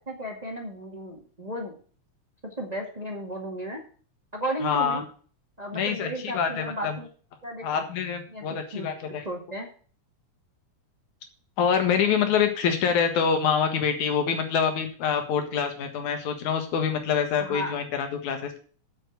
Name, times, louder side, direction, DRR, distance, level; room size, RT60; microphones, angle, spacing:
voice 1, 0.1-1.7 2.4-3.8 4.3-5.0 5.6-7.1 7.4-7.8 8.3-9.7 17.4-17.7, right 1 dB, 15° right, 1 dB, 1.4 m, -34 dB
voice 2, 4.6-5.0 5.7-7.0 7.6-9.2 11.6-18.6, left 7 dB, 70° left, 6 dB, 3.0 m, -26 dB
7.6 x 7.1 x 8.0 m, 0.42 s
omnidirectional pair, 3.6 m